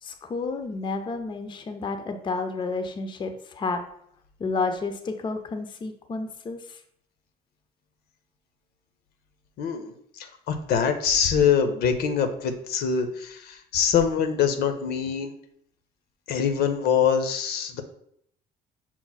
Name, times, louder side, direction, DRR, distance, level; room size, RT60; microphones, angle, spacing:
voice 1, 0.0-3.8 4.4-6.8, left 3 dB, 30° left, 7 dB, 0.4 m, -31 dB
voice 2, 9.6-9.9 10.2-15.3 16.3-17.8, left 7 dB, 70° left, 8 dB, 0.6 m, -24 dB
5.9 x 2.1 x 4.0 m, 0.69 s
cardioid pair, 110°, 17 cm